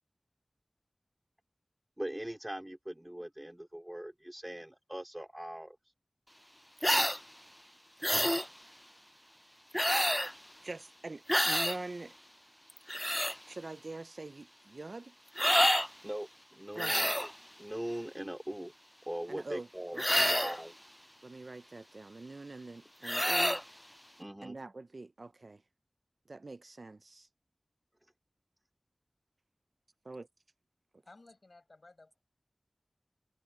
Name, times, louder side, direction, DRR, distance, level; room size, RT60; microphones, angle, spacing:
voice 1, 2.0-5.8 16.0-17.1 17.6-18.7 19.1-20.7 24.2-24.6, right 1 dB, 20° right, 2.5 m, -41 dB
sound 1, 6.8-7.2 8.0-8.5 9.7-10.3 11.3-11.8 12.7-13.4 15.4-15.9 16.8-17.3 20.0-20.6 23.0-23.6, equal, 5° left, 0.5 m, -28 dB
voice 2, 10.6-12.1 13.5-15.1 16.7-17.1 19.3-19.7 19.9-20.3 21.2-23.6 24.4-25.6 26.3-27.3 30.0-30.3, right 3 dB, 75° right, 0.6 m, -44 dB
voice 3, 30.9-32.2, left 2 dB, 65° left, 7.0 m, -57 dB
wide cardioid pair, 45°, 0 cm